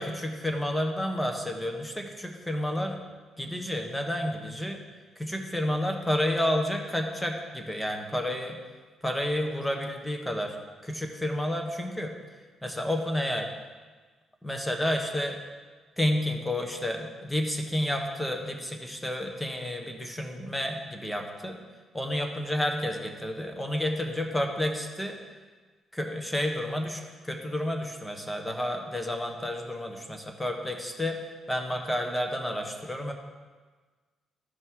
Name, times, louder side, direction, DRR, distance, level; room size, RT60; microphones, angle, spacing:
voice 1, 0.0-3.0 3.4-4.8 5.2-8.6 9.0-10.6 10.8-12.1 12.6-13.5 14.4-15.4 16.0-21.6 21.9-25.2 25.9-31.2 31.5-33.1, left 1 dB, 10° left, 4 dB, 1.3 m, -30 dB
12.5 x 5.5 x 4.7 m, 1.4 s
cardioid pair, 90°, 0 cm